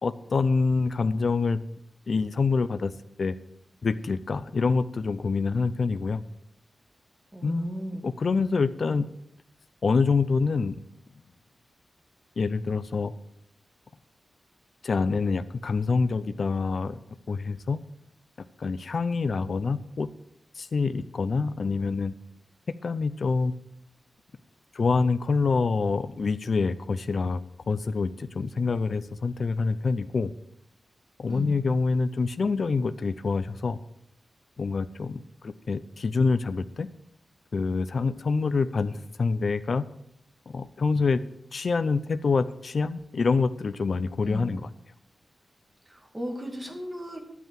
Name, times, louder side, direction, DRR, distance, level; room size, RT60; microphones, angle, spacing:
voice 1, 0.0-1.6 2.1-2.9 3.2-3.4 3.8-6.2 7.4-7.7 8.0-9.1 9.8-10.8 12.4-13.1 14.8-16.9 17.3-17.8 18.6-20.1 20.6-22.1 22.8-23.5 24.7-27.4 27.7-30.3 31.2-33.8 34.6-36.9 37.5-39.8 40.5-41.2 41.5-44.6, left 4 dB, 50° left, 12 dB, 0.5 m, -26 dB
voice 2, 7.3-8.1 31.3-31.6 44.2-44.5 45.9-47.2, right 1 dB, 15° right, 2 dB, 2.2 m, -35 dB
11.0 x 8.3 x 7.5 m, 0.74 s
wide cardioid pair, 165°, 0 cm